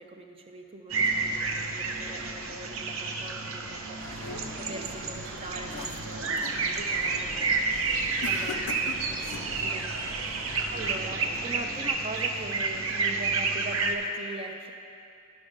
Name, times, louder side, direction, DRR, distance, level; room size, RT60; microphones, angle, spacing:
voice 1, 0.0-9.9 10.3-14.7, right 2 dB, 25° right, 4 dB, 0.5 m, -42 dB
sound 1, 0.9-13.9, right 4 dB, 70° right, 0.6 m, -30 dB
sound 2, 3.7-4.8 5.3-6.6 7.0-7.4 8.2-9.6, left 6 dB, 80° left, 0.4 m, -42 dB
sound 3, 4.0-11.9, right 1 dB, 45° right, 0.9 m, -43 dB
11.0 x 5.3 x 5.1 m, 2.6 s
head